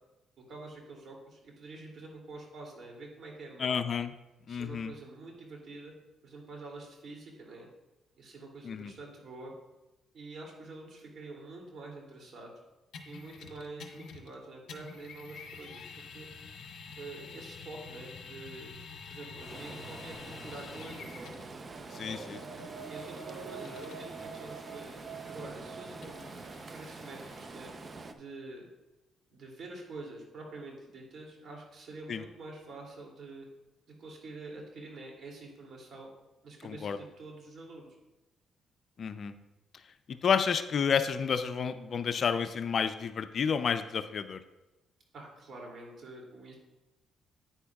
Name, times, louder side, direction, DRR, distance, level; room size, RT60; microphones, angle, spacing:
voice 1, 0.4-3.8 4.5-5.9 6.2-7.7 8.2-9.5 10.1-12.5 13.0-15.9 16.1-16.3 17.0-18.7 19.1-21.3 21.9-24.9 25.3-26.3 26.7-27.7 28.1-28.7 29.3-33.5 34.0-36.1 36.4-37.9 45.1-46.5, right 2 dB, 60° right, -1 dB, 2.7 m, -46 dB
voice 2, 3.6-4.1 4.5-4.9 8.6-8.9 21.9-22.4 32.1-32.2 36.6-37.0 39.0-39.3 40.1-44.4, left 6 dB, 55° left, 10 dB, 0.5 m, -30 dB
sound 1, 12.9-14.4 14.7-21.5 22.4-27.4, left 5 dB, 70° left, 1.0 m, -49 dB
Stream, 19.4-28.1, right 3 dB, 35° right, 0.7 m, -46 dB
sound 2, 21.5-27.3, right 6 dB, 80° right, 1.3 m, -48 dB
9.7 x 9.3 x 2.4 m, 1.0 s
cardioid pair, 90°, 0 cm